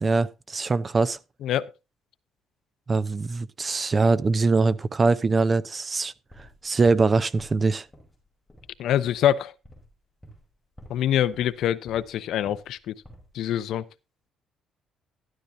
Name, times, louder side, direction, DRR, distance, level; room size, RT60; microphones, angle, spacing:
voice 1, 0.0-1.2 2.9-6.1 6.6-7.9, right 3 dB, 25° right, 0.6 m, -22 dB
sound 1, 6.3-7.1 7.4-8.2 8.5-8.8 9.1-9.3 9.6-9.9 10.2-10.5 10.8-11.0 11.3-12.1 12.5-12.7 13.0-13.3, equal, 5° left, 5.2 m, -49 dB
voice 2, 8.8-9.5 10.9-12.9 13.3-13.9, left 11 dB, 70° left, 0.7 m, -25 dB
13.0 x 12.5 x 2.7 m
cardioid pair, 135°, 0 cm